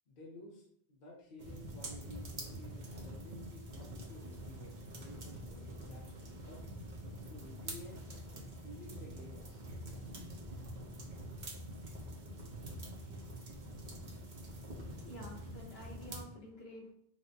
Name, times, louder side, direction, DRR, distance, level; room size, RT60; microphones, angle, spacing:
voice 1, 0.1-6.6 7.3-8.0 8.6-9.7, left 1 dB, 60° left, -3 dB, 0.9 m, -53 dB
sound 1, 1.4-16.2, right 1 dB, 50° right, 0.9 m, -46 dB
voice 2, 14.6-16.9, equal, 75° left, -3 dB, 1.4 m, -51 dB
5.7 x 2.1 x 2.7 m, 0.69 s
omnidirectional pair, 1.0 m